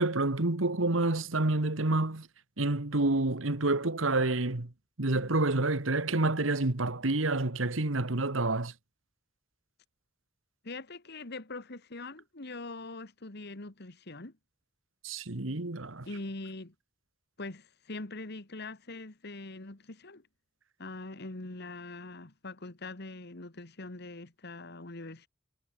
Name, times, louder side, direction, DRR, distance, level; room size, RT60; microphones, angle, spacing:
voice 1, 0.0-2.3 2.6-4.7 5.0-8.7 15.0-16.1, right 2 dB, 80° right, 1.7 m, -28 dB
voice 2, 10.6-14.3 16.1-16.7 17.4-20.3 20.8-25.3, left 2 dB, 55° left, 1.9 m, -42 dB
head